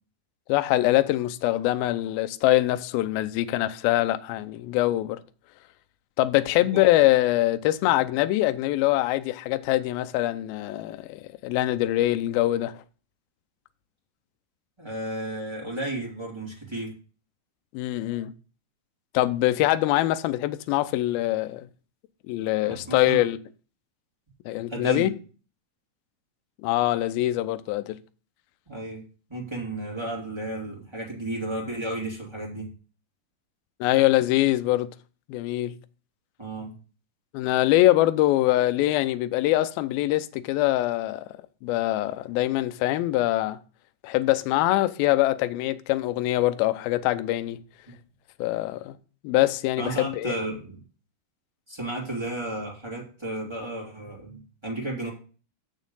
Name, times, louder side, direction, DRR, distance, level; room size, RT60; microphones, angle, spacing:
voice 1, 0.5-5.2 6.2-12.7 17.7-18.3 19.1-21.7 22.3-23.4 24.5-25.1 26.6-28.0 33.8-34.9 35.3-35.7 37.3-41.2 41.6-43.6 44.0-47.6 48.4-49.0 49.2-50.3, left 16 dB, 90° left, 2.1 m, -23 dB
voice 2, 14.8-16.9 22.6-23.2 24.7-25.1 28.7-29.0 29.3-32.7 36.4-36.7 47.9-48.0 49.8-50.8 51.7-55.1, right 2 dB, 10° right, 1.2 m, -33 dB
7.2 x 6.4 x 5.4 m
omnidirectional pair, 5.0 m